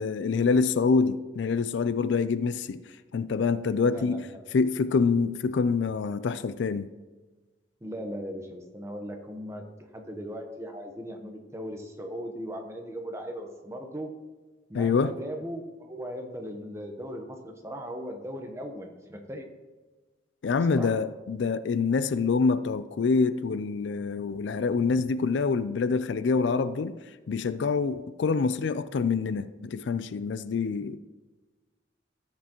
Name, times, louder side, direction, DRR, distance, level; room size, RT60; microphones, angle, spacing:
voice 1, 0.0-2.8 3.1-4.3 4.5-6.9 14.7-15.1 20.4-27.0 27.3-31.0, left 4 dB, 65° left, 0.4 m, -26 dB
voice 2, 3.8-4.4 7.8-9.6 9.9-14.1 14.7-19.5 20.7-20.9, equal, 15° right, 1.0 m, -38 dB
14.5 x 7.7 x 3.0 m
head